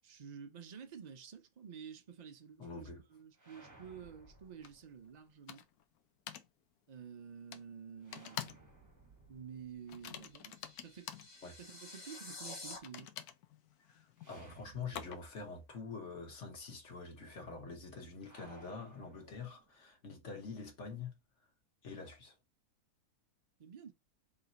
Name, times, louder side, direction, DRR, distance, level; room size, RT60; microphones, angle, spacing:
voice 1, 0.0-5.6 6.9-8.6 9.3-11.1 11.6-13.1 23.6-23.9, right 7 dB, 75° right, 0.4 m, -50 dB
voice 2, 2.6-3.0 11.4-11.6 13.9-21.2 21.8-22.3, left 4 dB, 55° left, 1.4 m, -46 dB
sound 1, 3.3-5.3 8.0-11.0 14.2-15.6 15.8-15.9 18.2-20.0, right 2 dB, 15° right, 0.8 m, -60 dB
sound 2, 4.6-4.7 5.5-5.8 6.3-6.5 7.5-7.6 8.1-8.7 9.0-9.2 9.9-11.3 12.7-15.4, left 10 dB, 85° left, 1.1 m, -47 dB
sound 3, 10.3-12.8, left 3 dB, 35° left, 0.9 m, -49 dB
3.3 x 2.9 x 3.9 m
omnidirectional pair, 1.6 m